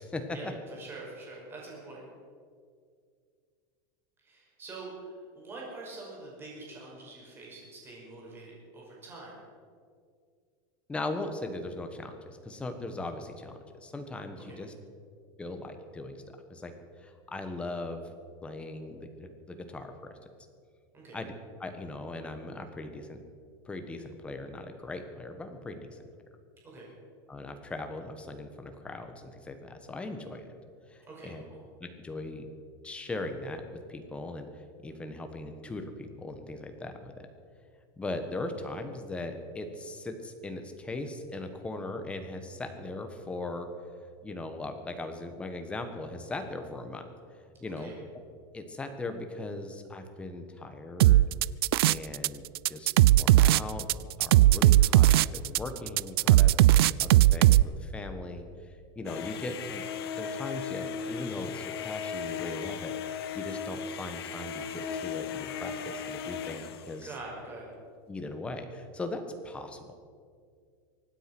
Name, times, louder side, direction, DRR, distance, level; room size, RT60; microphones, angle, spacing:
voice 1, 0.0-0.5 10.9-13.5 13.8-14.7 15.4-16.7 17.0-18.0 18.4-19.9 21.1-21.3 21.6-23.2 23.6-26.0 27.3-30.5 30.9-31.4 31.8-32.5 32.8-33.6 33.9-37.3 38.0-43.7 44.2-47.1 47.4-48.2 48.5-51.2 51.9-59.8 60.1-62.9 63.3-67.1 68.1-69.9, left 2 dB, 10° left, 6 dB, 1.3 m, -39 dB
voice 2, 0.7-2.0 4.2-4.9 5.3-9.4 14.5-14.6 20.9-21.2 26.6-26.9 31.1-31.6 47.8-47.9 67.0-67.7, right 3 dB, 20° right, -4 dB, 5.5 m, -45 dB
sound 1, 51.0-52.3 52.5-57.6, right 15 dB, 90° right, 0.4 m, -19 dB
sound 2, 59.1-67.1, left 7 dB, 90° left, 1.3 m, -37 dB
24.0 x 9.2 x 6.1 m, 2.1 s
supercardioid pair, 160°, 12 cm